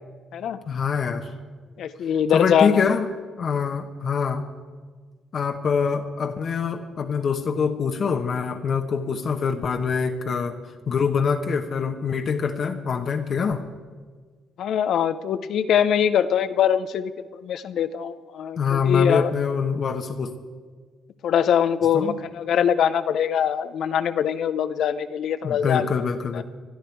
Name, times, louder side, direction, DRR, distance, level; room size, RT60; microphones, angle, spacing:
voice 1, 0.7-1.3 2.3-3.1 3.4-4.4 5.3-10.6 10.9-13.6 18.6-20.3 21.9-22.2 25.4-26.4, left 6 dB, 55° left, 5 dB, 1.0 m, -24 dB
voice 2, 1.8-2.8 14.6-19.3 21.2-26.0 26.3-26.4, left 8 dB, 70° left, 12 dB, 0.6 m, -23 dB
20.5 x 12.0 x 4.6 m, 1.5 s
cardioid pair, 90°, 0 cm